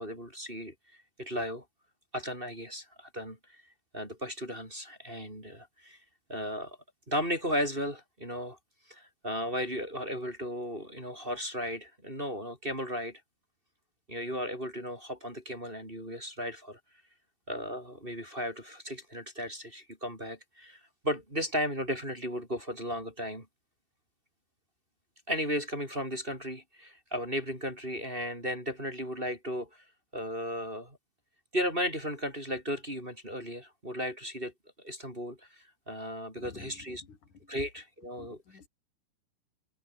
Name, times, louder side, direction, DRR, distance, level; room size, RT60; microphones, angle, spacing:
voice 1, 0.0-1.6 2.1-3.6 3.9-6.0 6.3-6.8 7.1-8.6 8.9-13.2 14.1-16.8 17.5-23.5 25.3-29.8 30.1-31.0 31.5-34.5 34.8-37.0 37.5-38.4, equal, 10° right, 5.7 m, -35 dB
voice 2, 36.4-36.8 37.1-37.2 38.2-38.7, left 5 dB, 50° left, 5.9 m, -50 dB
omnidirectional pair, 4.6 m